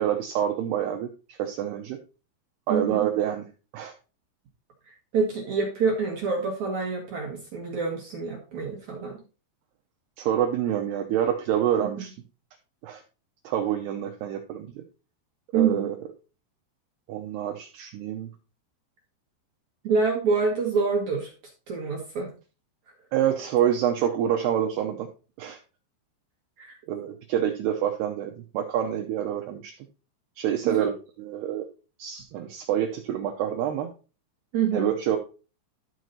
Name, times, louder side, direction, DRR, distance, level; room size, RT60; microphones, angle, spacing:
voice 1, 0.0-2.0 2.7-3.4 3.7-3.9 10.2-12.2 12.8-13.0 13.4-14.7 15.5-16.0 17.1-18.3 23.1-25.1 25.4-25.6 26.9-29.7 30.4-31.7 32.0-33.9 34.7-35.2, right 10 dB, 75° right, 3 dB, 2.5 m, -27 dB
voice 2, 2.7-3.1 4.9-9.2 11.8-11.9 15.5-15.9 19.8-21.3 21.7-22.3 26.6-26.8 30.6-30.9 34.5-34.9, right 5 dB, 60° right, 0 dB, 2.0 m, -26 dB
12.5 x 4.7 x 4.0 m, 0.33 s
omnidirectional pair, 5.4 m